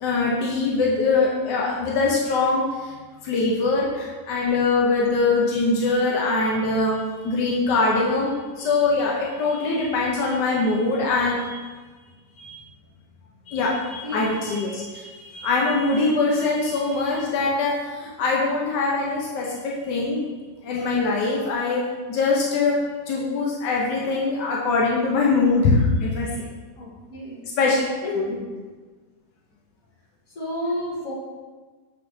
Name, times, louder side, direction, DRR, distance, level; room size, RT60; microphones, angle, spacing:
voice 1, 0.0-2.9 3.2-11.7 12.4-12.6 13.5-20.2 20.6-22.8 23.1-26.5 27.6-28.4, left 3 dB, 85° left, -2 dB, 1.4 m, -23 dB
voice 2, 14.0-14.4 26.8-27.4 28.0-28.5 30.4-31.1, left 1 dB, 55° left, -6 dB, 2.1 m, -32 dB
7.2 x 4.6 x 3.1 m, 1.4 s
omnidirectional pair, 1.8 m